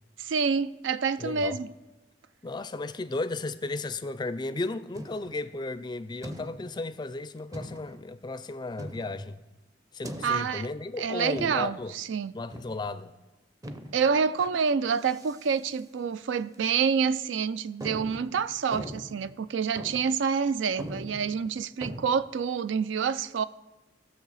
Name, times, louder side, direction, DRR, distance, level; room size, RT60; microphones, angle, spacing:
voice 1, 0.2-1.7 10.2-10.7 11.0-12.3 13.9-23.4, right 6 dB, 90° right, 0.4 m, -27 dB
voice 2, 1.2-1.6 2.4-9.4 9.9-11.9 12.3-13.1, left 2 dB, 25° left, 0.4 m, -34 dB
sound 1, 4.9-5.5 6.2-6.9 7.5-8.1 8.8-9.3 10.0-10.7 11.3-11.9 12.5-12.9 13.6-14.5 14.9-15.5 15.8-15.9 16.5-16.7 17.2-17.3 17.8-19.4 19.8-20.2 20.5-20.6 20.8-22.1, equal, 20° right, 0.6 m, -41 dB
17.0 x 6.5 x 4.1 m
head